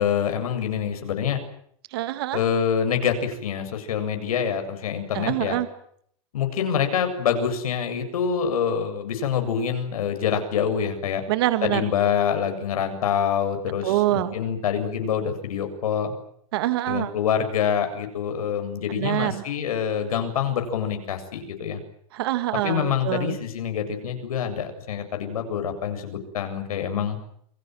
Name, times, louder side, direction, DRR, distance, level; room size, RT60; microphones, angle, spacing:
voice 1, 0.0-1.4 2.3-5.6 6.3-11.2 11.6-16.1 16.9-21.8 22.6-27.2, left 8 dB, 80° left, 7 dB, 7.6 m, -26 dB
voice 2, 1.9-2.4 5.1-5.7 11.3-11.9 13.8-14.3 16.5-17.1 19.0-19.4 22.1-23.4, right 15 dB, 45° right, 11 dB, 2.1 m, -25 dB
29.5 x 23.0 x 7.9 m, 0.66 s
supercardioid pair, 180°, 18 cm